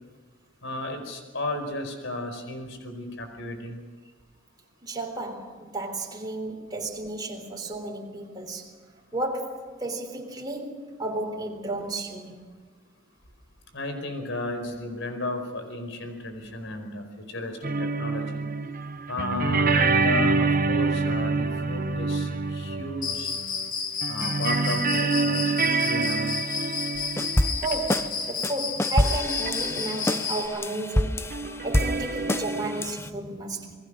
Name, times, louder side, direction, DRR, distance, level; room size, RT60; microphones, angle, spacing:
voice 1, 0.6-3.8 13.7-18.4 19.1-23.3 24.1-26.4, left 2 dB, 70° left, 4.8 m, -34 dB
voice 2, 4.8-8.7 9.1-12.4 27.4-33.8, right 2 dB, 20° right, 3.6 m, -33 dB
sound 1, 17.6-23.7 24.0-28.1 29.5-29.6 29.8-29.9 31.3-32.8, right 4 dB, 45° right, 1.1 m, -26 dB
Cricket, 23.0-30.5, left 5 dB, 45° left, 3.0 m, -31 dB
sound 2, 27.0-28.1 28.4-33.1, left 1 dB, 15° left, 0.7 m, -27 dB
28.5 x 19.5 x 6.4 m
head